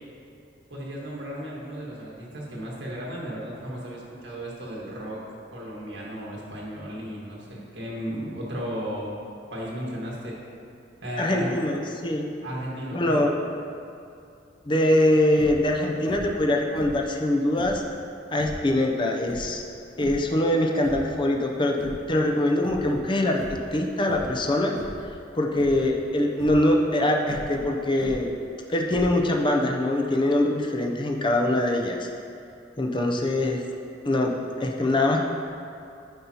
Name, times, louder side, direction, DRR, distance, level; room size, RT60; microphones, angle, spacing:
voice 1, 0.7-5.2 5.5-9.1 9.5-10.3 11.0-11.5 12.4-13.3, equal, 80° right, -4 dB, 1.6 m, -35 dB
voice 2, 11.2-12.3 12.9-13.3 14.7-17.8 18.3-19.6 20.0-24.7 25.3-28.3 28.7-32.1 32.8-33.6 34.0-34.3 34.6-35.2, left 1 dB, 25° left, 1 dB, 0.5 m, -23 dB
sound 1, 15.3-15.7 16.1-16.4 16.7-17.9 18.3-18.7 19.2-20.3 20.7-21.2 21.6-22.4 22.6-23.0 23.3-23.7 24.1-24.4 24.7-25.1 25.6-25.9 26.3-26.7 27.2-28.4 28.8-29.4, equal, 65° right, 0.7 m, -39 dB
9.2 x 5.3 x 2.9 m, 2.5 s
head